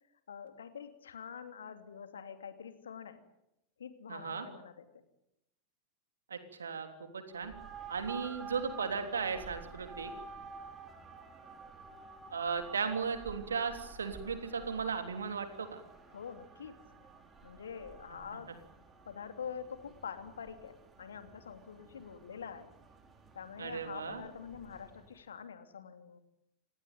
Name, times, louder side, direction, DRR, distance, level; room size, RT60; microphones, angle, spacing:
voice 1, 0.3-3.2 3.8-5.0 16.1-16.8 17.4-18.5 19.1-22.7 23.3-26.2, left 7 dB, 65° left, 8 dB, 2.8 m, -46 dB
voice 2, 4.1-4.5 6.3-6.9 7.1-7.5 7.9-10.1 12.3-15.8 23.6-24.2, right 5 dB, 70° right, 7 dB, 3.3 m, -36 dB
sound 1, 7.3-25.2, right 5 dB, 20° right, 4.7 m, -51 dB
27.5 x 18.5 x 9.2 m, 0.87 s
figure-of-eight pair, 90°, 0 cm